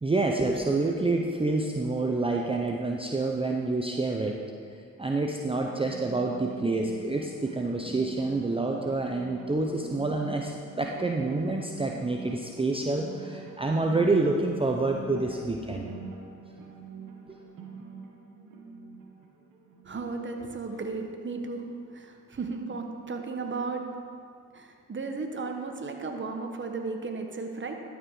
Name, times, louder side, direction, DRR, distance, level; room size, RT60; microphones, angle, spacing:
voice 1, 0.0-4.4 5.0-15.9, right 2 dB, 15° right, 1 dB, 0.7 m, -28 dB
sound 1, 5.3-20.3, right 5 dB, 75° right, 1.3 m, -44 dB
voice 2, 19.8-23.9 24.5-27.7, right 4 dB, 35° right, 4 dB, 1.2 m, -35 dB
12.0 x 5.2 x 4.8 m, 2.2 s
supercardioid pair, 55°, 33 cm